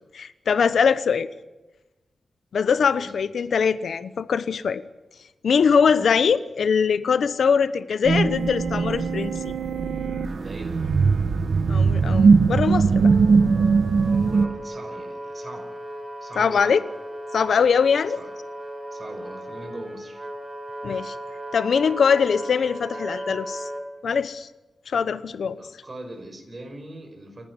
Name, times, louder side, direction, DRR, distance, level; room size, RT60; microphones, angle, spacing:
voice 1, 0.1-1.3 2.5-4.8 5.4-9.5 11.7-13.1 16.4-16.8 17.3-18.2 20.8-21.1 21.5-23.7 24.0-24.5 24.9-25.6, left 6 dB, 85° left, 14 dB, 1.0 m, -22 dB
voice 2, 2.8-3.1 5.8-6.3 10.4-11.0 14.2-15.8 16.2-16.8 18.2-18.4 18.9-20.3 25.6-27.5, right 1 dB, 35° right, 5 dB, 5.5 m, -41 dB
sound 1, 8.0-14.5, right 4 dB, 65° right, 1.3 m, -20 dB
Wind instrument woodwind instrument, 13.0-23.9, right 1 dB, 15° right, 3.1 m, -36 dB
29.5 x 11.0 x 9.9 m, 1.1 s
wide cardioid pair, 105°, 0 cm